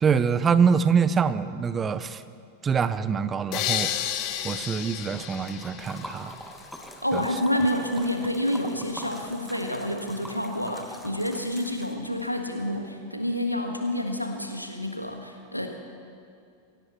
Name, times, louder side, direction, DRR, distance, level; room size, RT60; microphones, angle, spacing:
voice 1, 0.0-2.2 2.6-4.1 4.4-6.4 7.1-7.2, right 6 dB, 20° right, 14 dB, 0.7 m, -24 dB
sound 1, 3.5-6.5, left 11 dB, 40° left, 1.0 m, -31 dB
Liquid, 5.1-12.3, equal, ahead, 1.3 m, -43 dB
voice 2, 7.0-15.7, left 1 dB, 90° left, 4 dB, 1.6 m, -28 dB
23.5 x 17.0 x 3.1 m, 2.4 s
figure-of-eight pair, 90°, 0 cm